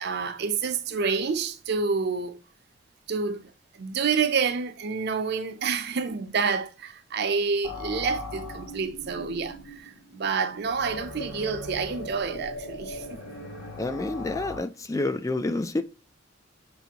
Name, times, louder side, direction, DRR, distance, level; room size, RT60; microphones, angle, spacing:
voice 1, 0.0-2.4 3.1-3.5 3.8-13.2, right 5 dB, 60° right, 0.6 m, -28 dB
sound 1, 7.6-14.6, left 2 dB, 80° left, 2.1 m, -39 dB
voice 2, 13.8-15.8, left 2 dB, 15° left, 0.3 m, -28 dB
6.8 x 2.6 x 2.8 m
head